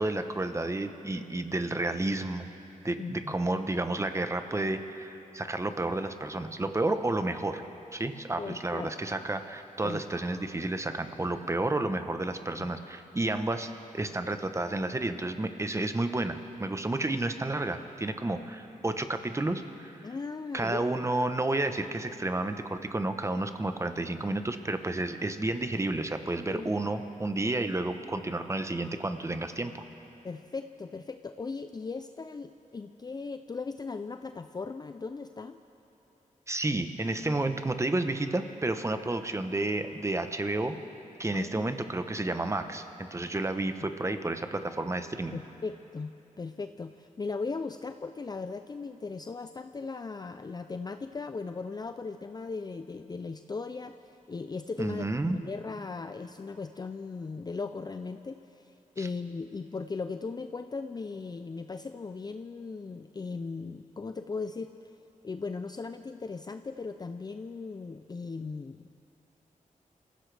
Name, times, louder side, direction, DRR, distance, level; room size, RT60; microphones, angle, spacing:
voice 1, 0.0-2.5 2.8-7.6 7.9-20.0 20.5-29.8 36.5-40.8 41.2-45.4 54.8-55.4 59.0-59.1, right 2 dB, 20° right, 8 dB, 0.9 m, -31 dB
voice 2, 3.0-3.3 8.3-8.9 9.8-10.0 12.5-12.7 20.0-20.8 26.5-26.7 30.2-35.6 41.3-41.5 45.3-46.1 46.4-55.1 55.3-64.7 65.2-68.9, left 4 dB, 30° left, 8 dB, 0.4 m, -38 dB
27.5 x 15.5 x 3.4 m, 2.9 s
cardioid pair, 80°, 14 cm